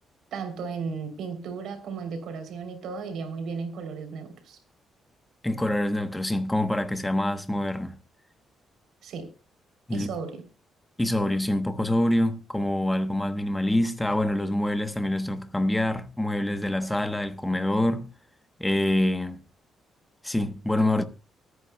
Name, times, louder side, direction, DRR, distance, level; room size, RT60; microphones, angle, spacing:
voice 1, 0.3-4.6 9.0-9.3 9.9-10.4, right 5 dB, 70° right, 3.3 m, -35 dB
voice 2, 5.4-8.0 9.9-10.1 11.0-18.1 18.6-19.4 20.2-21.0, left 1 dB, 5° left, 1.0 m, -26 dB
24.5 x 9.6 x 2.3 m
cardioid pair, 155°, 0 cm